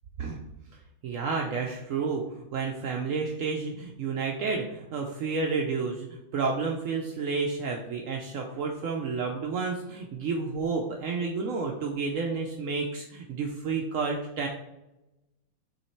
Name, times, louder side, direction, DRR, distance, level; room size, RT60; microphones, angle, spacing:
voice 1, 1.0-6.1 6.3-14.5, right 4 dB, 75° right, 1 dB, 0.7 m, -30 dB
7.0 x 3.2 x 4.5 m, 0.95 s
omnidirectional pair, 2.1 m